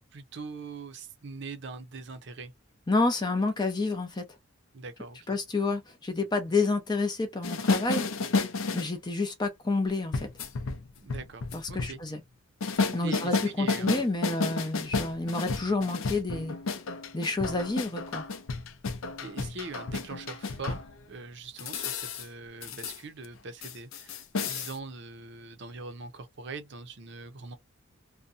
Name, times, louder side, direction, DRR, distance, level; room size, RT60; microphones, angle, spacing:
voice 1, 0.1-2.5 4.7-5.2 11.0-12.0 13.0-14.0 19.2-20.8 21.1-27.6, right 4 dB, 55° right, 0.6 m, -42 dB
voice 2, 2.9-4.2 5.3-8.0 8.7-10.3 11.5-12.2 12.9-16.6 17.1-18.2, left 3 dB, 20° left, 0.5 m, -29 dB
sound 1, 7.4-8.9 10.1-12.0 12.6-20.9 21.6-22.3 22.6-23.0 23.2-23.4 23.6-24.8, left 4 dB, 75° left, 0.5 m, -31 dB
2.6 x 2.2 x 2.4 m
head